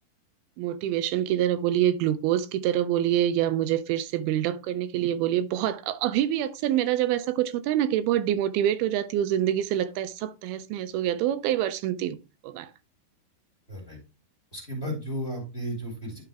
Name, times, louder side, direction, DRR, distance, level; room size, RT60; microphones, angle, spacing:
voice 1, 0.6-12.2 12.4-12.7, right 11 dB, 85° right, 2.5 m, -26 dB
voice 2, 14.5-16.2, equal, 20° left, 1.9 m, -34 dB
11.5 x 4.0 x 3.4 m
omnidirectional pair, 4.5 m